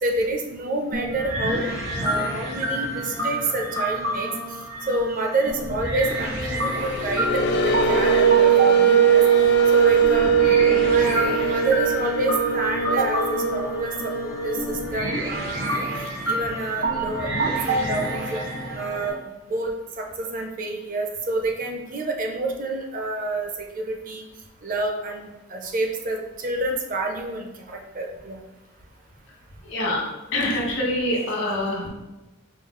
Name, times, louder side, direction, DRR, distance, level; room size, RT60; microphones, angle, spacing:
voice 1, 0.0-1.7 2.0-4.3 4.9-10.3 10.8-15.8 16.2-18.4 18.7-19.2 19.5-24.3 24.6-28.4, right 2 dB, 40° right, 2 dB, 0.5 m, -28 dB
sound 1, 0.9-19.1, right 1 dB, 65° right, 1.1 m, -28 dB
sound 2, 6.7-15.1, right 6 dB, 55° left, 0.4 m, -20 dB
voice 2, 29.7-30.0 30.3-31.9, left 1 dB, 75° left, -2 dB, 1.2 m, -25 dB
5.1 x 2.3 x 3.7 m, 1.0 s
head